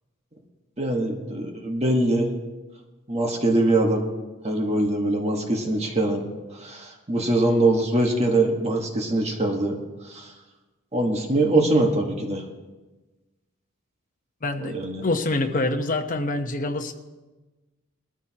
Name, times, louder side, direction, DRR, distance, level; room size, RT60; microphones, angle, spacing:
voice 1, 0.8-2.3 3.1-4.0 4.4-6.2 6.6-9.7 10.0-10.3 10.9-12.4 14.6-15.0, right 2 dB, 30° right, 1 dB, 1.5 m, -23 dB
voice 2, 14.4-14.8 15.0-16.9, left 2 dB, 40° left, 5 dB, 1.0 m, -25 dB
20.5 x 13.5 x 3.0 m, 1.2 s
head